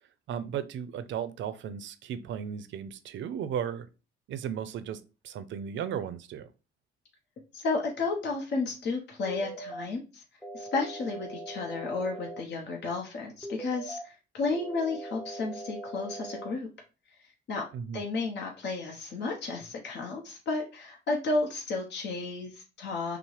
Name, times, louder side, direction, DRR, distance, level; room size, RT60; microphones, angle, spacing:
voice 1, 0.3-3.9 4.3-6.5 17.7-18.0, right 8 dB, 70° right, 0.5 m, -35 dB
voice 2, 7.5-10.2 10.5-16.7 17.2-17.6 17.9-23.2, left 3 dB, 60° left, 0.9 m, -32 dB
sound 1, 9.3-9.9 10.4-12.4 13.4-14.0 14.5-16.5, right 1 dB, 5° left, 0.6 m, -41 dB
5.9 x 2.0 x 3.1 m
cardioid pair, 90°, 20 cm